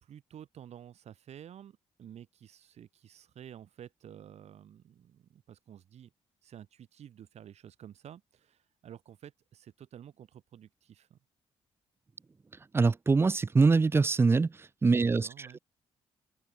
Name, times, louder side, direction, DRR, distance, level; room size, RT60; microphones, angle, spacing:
voice 1, 0.0-6.1 6.4-11.2 14.9-15.6, right 10 dB, 65° right, 2.2 m, -51 dB
voice 2, 12.7-14.5 14.8-15.3, right 4 dB, 20° right, 0.4 m, -23 dB
open air
supercardioid pair, 65°, 12 cm